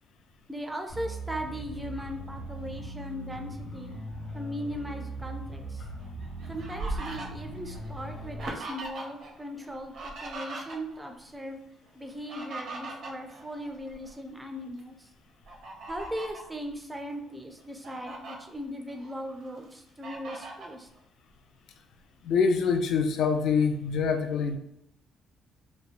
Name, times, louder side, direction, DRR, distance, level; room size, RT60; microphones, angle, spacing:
voice 1, 0.5-3.9 4.3-5.9 6.5-11.6 11.9-15.1 15.9-20.9, equal, 10° right, 4 dB, 0.3 m, -38 dB
sound 1, 0.9-8.5, right 1 dB, 45° left, 1.0 m, -39 dB
Fowl, 6.0-9.3 9.6-11.1 12.0-14.1 14.6-14.8 15.4-16.5 17.1-17.2 17.6-18.4 18.9-19.6 20.0-20.7, right 2 dB, 65° right, 0.5 m, -40 dB
voice 2, 22.2-24.6, left 5 dB, 65° left, 5 dB, 0.3 m, -25 dB
3.0 x 2.1 x 2.4 m, 0.80 s
cardioid pair, 135°, 0 cm